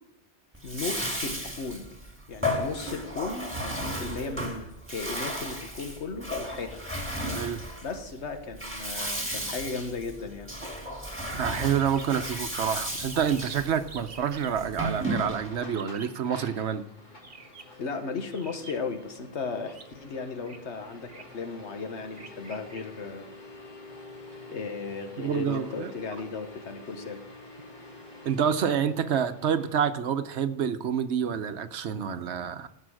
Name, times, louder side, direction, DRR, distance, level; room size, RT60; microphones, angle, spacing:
Bathtub (filling or washing), 0.5-15.7, equal, 10° right, 2.1 m, -34 dB
voice 1, 0.6-1.9 2.3-6.8 7.8-10.5 17.8-23.3 24.5-27.2, left 4 dB, 70° left, 7 dB, 1.6 m, -36 dB
voice 2, 11.3-16.8 25.2-25.9 28.2-32.7, right 8 dB, 70° right, 10 dB, 1.1 m, -28 dB
sound 1, 11.7-12.1 12.4-12.5 12.7-12.8 13.0-13.5 13.9-14.5 15.7-16.2 17.2-17.8 18.3-19.0 19.7-19.9 20.4-20.6 21.0-21.4 22.1-22.8, right 4 dB, 45° right, 1.3 m, -48 dB
sound 2, 12.2-29.9, left 2 dB, 40° left, 2.3 m, -49 dB
15.5 x 5.6 x 6.3 m, 0.90 s
omnidirectional pair, 1.2 m